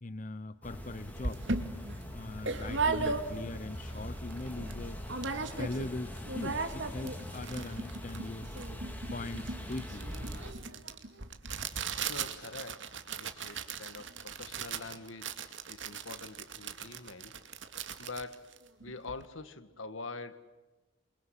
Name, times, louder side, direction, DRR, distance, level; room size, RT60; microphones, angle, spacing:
voice 1, 0.0-1.4 2.0-5.0 5.6-8.5 9.1-10.1, left 2 dB, 40° left, 14 dB, 0.8 m, -41 dB
sound 1, 0.6-10.5, equal, 10° left, 3.8 m, -42 dB
sound 2, 0.8-0.9 1.2-3.6 4.0-4.1 4.3-4.8 5.1-5.9 6.2-19.2, right 4 dB, 70° right, 2.4 m, -37 dB
voice 2, 11.9-12.9 13.2-15.4 15.7-17.3 18.0-18.6 18.8-20.4, left 3 dB, 80° left, 11 dB, 1.8 m, -45 dB
28.5 x 24.5 x 8.2 m, 1.2 s
head